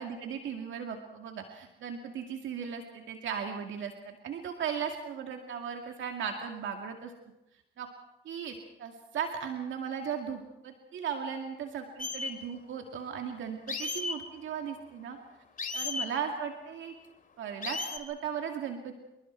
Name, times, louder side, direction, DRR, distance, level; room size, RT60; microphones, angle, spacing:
voice 1, 0.0-7.1 7.8-7.9 8.2-15.2 15.7-16.9 17.4-18.9, right 7 dB, 75° right, 3 dB, 2.3 m, -37 dB
sound 1, 12.0-12.3 13.7-14.1 15.6-16.1 17.6-18.0, left 4 dB, 45° left, 2.7 m, -34 dB
27.0 x 23.0 x 4.6 m, 0.93 s
cardioid pair, 90°, 20 cm